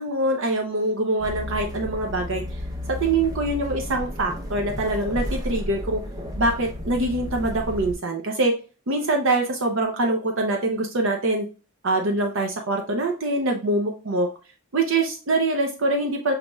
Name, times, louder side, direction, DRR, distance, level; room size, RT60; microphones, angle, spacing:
voice 1, 0.0-2.6 2.9-6.0 6.4-8.5 8.9-11.5 11.8-14.3 14.7-16.3, right 2 dB, 60° right, 3 dB, 0.6 m, -24 dB
sound 1, 1.2-8.0, left 1 dB, 15° right, 0.6 m, -32 dB
6.6 x 3.0 x 2.2 m, 0.35 s
head